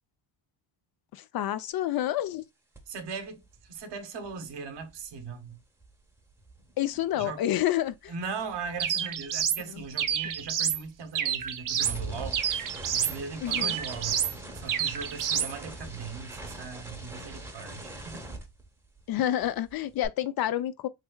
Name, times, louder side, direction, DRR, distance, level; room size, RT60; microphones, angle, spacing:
voice 1, 1.1-2.4 6.8-8.1 9.7-9.8 13.4-13.8 19.1-20.9, left 12 dB, 55° left, 0.5 m, -29 dB
sound 1, 2.7-3.0 3.2-7.6 7.9-19.2 19.4-20.1, right 2 dB, 5° right, 0.8 m, -43 dB
voice 2, 2.9-5.6 7.1-7.4 8.1-14.3 14.5-18.2, right 5 dB, 60° right, 1.0 m, -39 dB
Pychopath Sound, 8.8-9.6 10.0-10.8 11.1-12.0 12.3-13.2 13.5-14.3 14.7-15.5, right 9 dB, 45° right, 0.6 m, -28 dB
3.3 x 3.3 x 2.2 m
cardioid pair, 105°, 47 cm